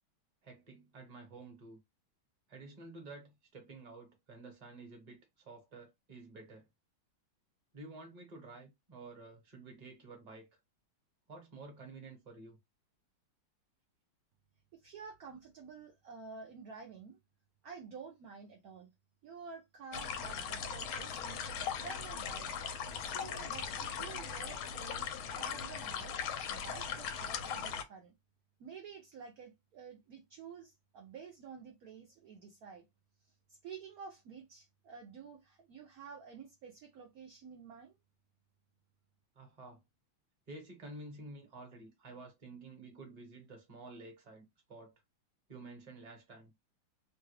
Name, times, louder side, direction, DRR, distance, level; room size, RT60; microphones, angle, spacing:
voice 1, 0.4-1.8 2.5-6.7 7.7-10.5 11.3-12.6 39.3-39.8 40.5-44.9 45.5-46.5, right 3 dB, 25° right, 0.9 m, -51 dB
voice 2, 14.7-17.2 17.6-18.9 19.2-22.5 23.0-25.1 25.3-26.1 26.5-28.1 28.6-32.9 33.2-38.0, right 5 dB, 70° right, 0.8 m, -50 dB
sound 1, 19.9-27.8, left 7 dB, 85° left, 1.4 m, -39 dB
3.3 x 2.3 x 3.2 m
omnidirectional pair, 2.2 m